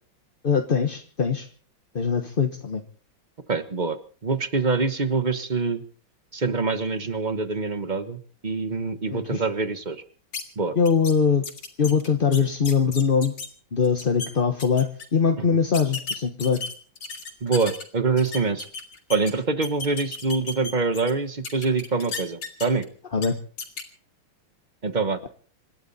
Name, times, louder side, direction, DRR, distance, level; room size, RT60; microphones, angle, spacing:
voice 1, 0.4-1.5 1.9-2.8 9.1-9.4 10.8-11.4 11.8-13.3 13.7-16.6 23.1-23.4, left 6 dB, 35° left, 5 dB, 1.1 m, -22 dB
voice 2, 3.5-4.0 4.2-5.8 6.3-10.0 10.6-10.7 15.4-15.6 17.4-18.7 19.1-22.8 24.8-25.3, right 4 dB, 30° right, 11 dB, 1.1 m, -25 dB
sound 1, 10.3-10.4 10.9-11.1 11.4-13.5 13.8-14.3 14.6-15.1 15.7-17.8 18.2-19.3 19.6-21.1 21.4-22.8 23.2-23.3 23.6-23.8, left 4 dB, 75° left, 3.3 m, -34 dB
27.5 x 12.0 x 4.2 m, 0.43 s
omnidirectional pair, 2.2 m